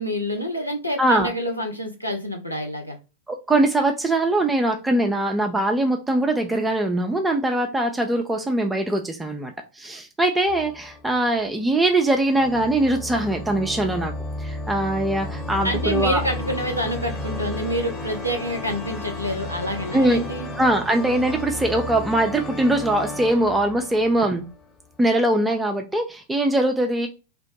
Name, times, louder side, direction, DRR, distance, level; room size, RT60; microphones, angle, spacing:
voice 1, 0.0-3.0 15.6-20.5, equal, 90° left, 3 dB, 0.5 m, -27 dB
voice 2, 1.0-1.3 3.3-14.1 14.4-16.2 19.9-20.2 20.6-24.4 25.0-27.1, right 1 dB, 10° right, 3 dB, 0.3 m, -22 dB
sound 1, 10.5-11.7 12.3-24.9, left 2 dB, 30° left, 1.0 m, -33 dB
2.8 x 2.0 x 2.9 m, 0.30 s
figure-of-eight pair, 90°, 0 cm